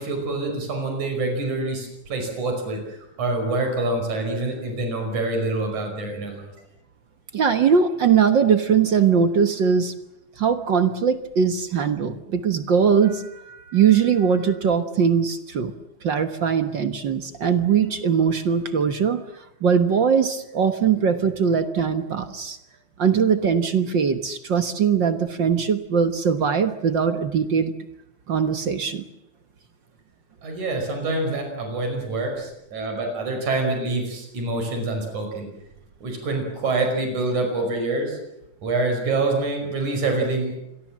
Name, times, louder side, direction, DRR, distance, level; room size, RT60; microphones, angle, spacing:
voice 1, 0.0-6.5 30.4-35.5 36.0-38.2 38.6-40.6, right 2 dB, 80° right, 3 dB, 6.8 m, -26 dB
voice 2, 7.3-9.9 10.4-15.7 16.0-19.2 19.6-22.6 23.0-27.7 28.3-29.0, right 6 dB, 50° right, 9 dB, 1.6 m, -21 dB
27.0 x 22.5 x 7.5 m, 0.83 s
omnidirectional pair, 3.3 m